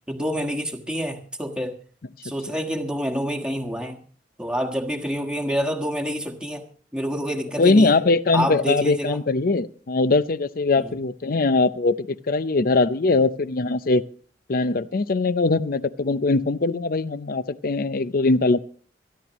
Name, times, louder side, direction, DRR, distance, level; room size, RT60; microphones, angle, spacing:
voice 1, 0.1-1.8 2.2-4.0 4.4-6.6 6.9-7.9 8.3-9.2 10.8-10.9, equal, 5° right, 4 dB, 1.4 m, -27 dB
voice 2, 7.6-14.0 14.5-18.6, left 3 dB, 55° left, 15 dB, 0.6 m, -21 dB
25.5 x 11.0 x 3.0 m, 0.43 s
head